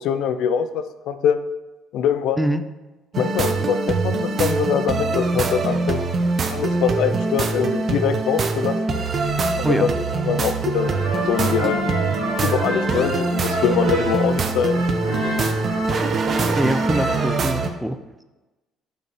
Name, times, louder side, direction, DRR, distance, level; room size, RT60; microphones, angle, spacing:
voice 1, 0.0-1.4 1.9-2.5 3.2-6.0 6.5-9.0 9.6-9.9 10.3-11.8 12.4-14.8, left 8 dB, 70° left, 10 dB, 0.4 m, -23 dB
sound 1, 3.1-17.7, right 3 dB, 45° right, 0.6 m, -23 dB
Gurgling, 9.0-16.8, left 1 dB, 10° left, 1.7 m, -44 dB
sound 2, 10.7-17.3, right 1 dB, 85° right, 1.4 m, -29 dB
voice 2, 16.5-18.0, right 1 dB, 5° right, 10 dB, 0.5 m, -23 dB
6.4 x 5.2 x 3.0 m, 1.1 s
hypercardioid pair, 60°, 0 cm